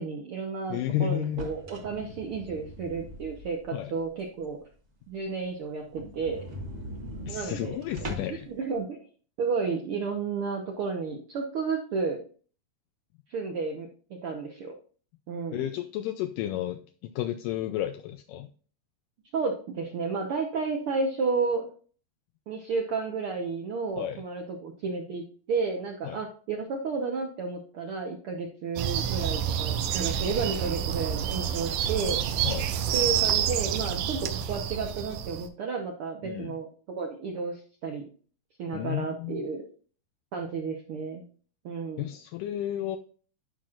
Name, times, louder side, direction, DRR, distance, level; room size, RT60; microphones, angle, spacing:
voice 1, 0.0-4.6 5.1-6.4 7.3-7.8 8.3-9.0 9.4-12.2 13.3-14.7 15.3-15.7 19.3-21.7 22.5-32.2 32.9-36.7 37.0-38.0 38.6-39.6 40.3-41.2 41.6-42.0, right 4 dB, 70° right, 1 dB, 1.3 m, -32 dB
voice 2, 0.7-1.5 3.7-3.9 7.3-8.5 15.5-18.5 24.0-24.2 26.0-26.2 32.4-32.8 36.2-36.6 38.7-39.4 42.0-43.0, left 12 dB, 80° left, 7 dB, 2.1 m, -32 dB
sound 1, 1.2-3.8 4.2-4.3 4.7-4.8 5.1-5.2 5.4-5.5 5.9-8.5, equal, 45° right, 0.9 m, -41 dB
sound 2, 28.8-35.5, right 9 dB, 90° right, 2.4 m, -28 dB
11.0 x 5.9 x 2.5 m, 0.42 s
omnidirectional pair, 3.8 m